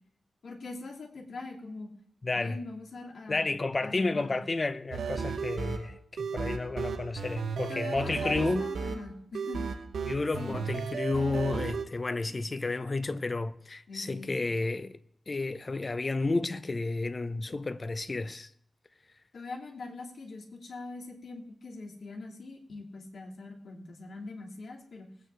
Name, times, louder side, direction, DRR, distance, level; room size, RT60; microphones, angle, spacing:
voice 1, 0.4-1.9 2.3-3.5 3.8-4.4 7.7-9.7 10.4-10.7 13.9-14.5 19.3-25.1, left 3 dB, 75° left, 2.7 m, -42 dB
voice 2, 2.2-2.6 3.3-8.7 10.1-15.0 15.3-18.5, left 3 dB, 40° left, 0.9 m, -31 dB
sound 1, 4.9-11.8, right 5 dB, 90° right, 0.9 m, -34 dB
21.0 x 9.1 x 3.4 m
cardioid pair, 65°, 0 cm